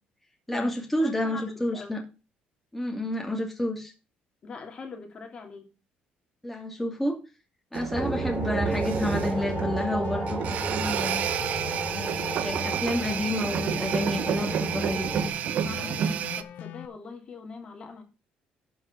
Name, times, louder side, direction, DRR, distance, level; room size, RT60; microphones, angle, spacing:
voice 1, 0.5-2.0 2.7-3.9 6.4-7.2 7.7-11.2 12.4-15.9, left 1 dB, 5° left, 2.5 m, -30 dB
voice 2, 1.0-2.0 4.4-5.7 15.6-18.0, left 4 dB, 35° left, 2.6 m, -42 dB
sound 1, 7.7-16.4, right 9 dB, 55° right, 0.9 m, -31 dB
sound 2, 7.9-15.3, right 3 dB, 15° right, 3.1 m, -32 dB
sound 3, 8.1-16.9, left 10 dB, 75° left, 1.1 m, -42 dB
11.5 x 5.6 x 5.9 m
cardioid pair, 145°, 3 cm